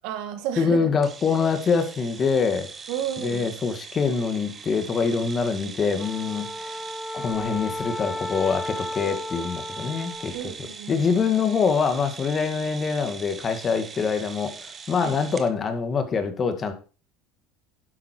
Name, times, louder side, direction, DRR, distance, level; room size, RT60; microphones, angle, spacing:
voice 1, 0.0-0.9 2.9-3.5 10.3-11.1 15.0-15.1, right 10 dB, 70° right, 8 dB, 2.2 m, -32 dB
voice 2, 0.6-2.7 3.2-6.7 7.1-10.4 10.9-16.7, left 5 dB, 30° left, 8 dB, 2.0 m, -24 dB
sound 1, 1.0-15.5, right 5 dB, 30° right, 1.2 m, -41 dB
Wind instrument woodwind instrument, 6.0-10.4, left 1 dB, 5° left, 0.6 m, -34 dB
11.0 x 7.6 x 4.5 m, 0.36 s
supercardioid pair, 110°, 0 cm